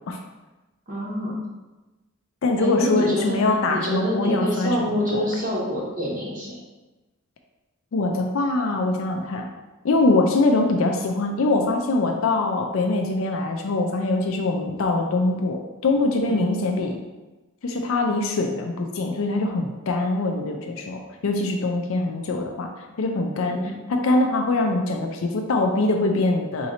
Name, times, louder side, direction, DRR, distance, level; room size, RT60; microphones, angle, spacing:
voice 1, 0.9-1.4 2.6-3.4 3.7-6.6 16.3-16.6 23.4-23.8, equal, 40° right, -6 dB, 0.9 m, -26 dB
voice 2, 2.4-5.3 7.9-9.5 9.8-17.0 17.6-22.7 23.0-23.6 23.9-26.7, left 2 dB, 70° left, 3 dB, 0.4 m, -23 dB
3.7 x 2.8 x 4.1 m, 1.1 s
head